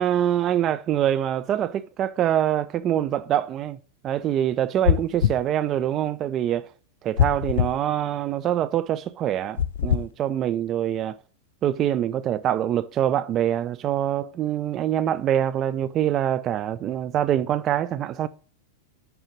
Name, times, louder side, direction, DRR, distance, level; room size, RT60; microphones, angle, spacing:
voice 1, 0.0-3.8 4.0-6.7 7.0-11.2 11.6-18.3, right 11 dB, 30° right, 0.4 m, -24 dB
sound 1, 4.8-5.4 7.2-7.8 9.6-10.1, left 9 dB, 60° left, 0.4 m, -22 dB
6.4 x 6.1 x 7.3 m
figure-of-eight pair, 90°, 0 cm